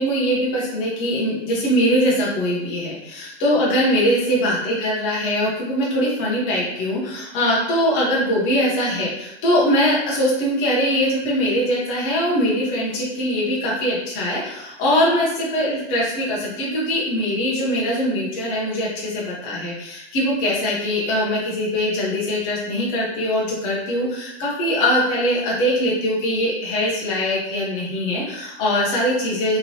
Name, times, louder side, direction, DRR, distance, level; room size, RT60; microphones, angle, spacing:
voice 1, 0.0-29.6, equal, 15° left, -5 dB, 0.3 m, -22 dB
2.9 x 2.6 x 2.6 m, 0.87 s
hypercardioid pair, 150°, 35 cm